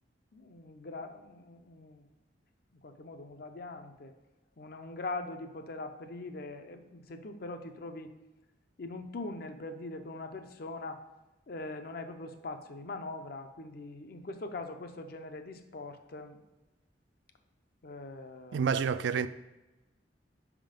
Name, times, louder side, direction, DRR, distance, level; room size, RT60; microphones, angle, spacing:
voice 1, 0.3-2.0 2.8-4.1 4.6-8.1 8.8-11.0 11.5-16.4 17.8-18.9, left 2 dB, 55° left, 0.6 m, -42 dB
voice 2, 18.5-19.3, right 6 dB, 80° right, 0.3 m, -28 dB
5.4 x 3.7 x 5.1 m
head